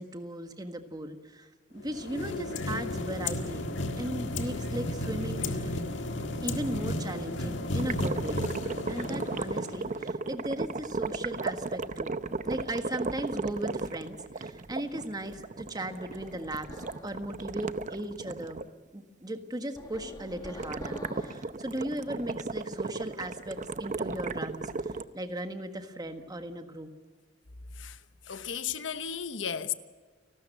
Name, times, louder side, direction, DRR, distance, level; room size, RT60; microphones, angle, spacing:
voice 1, 0.0-5.8 6.4-8.5 8.9-18.6 18.9-26.9, right 1 dB, 20° right, 1.6 m, -37 dB
sound 1, 1.8-10.1, left 2 dB, 75° left, 1.8 m, -33 dB
sound 2, 7.8-18.7 20.6-25.0, right 3 dB, 40° right, 0.7 m, -35 dB
sound 3, 16.1-17.2 19.8-21.5, left 1 dB, 20° left, 1.6 m, -46 dB
voice 2, 27.7-29.7, left 7 dB, 90° left, 1.1 m, -35 dB
30.0 x 13.0 x 7.9 m
head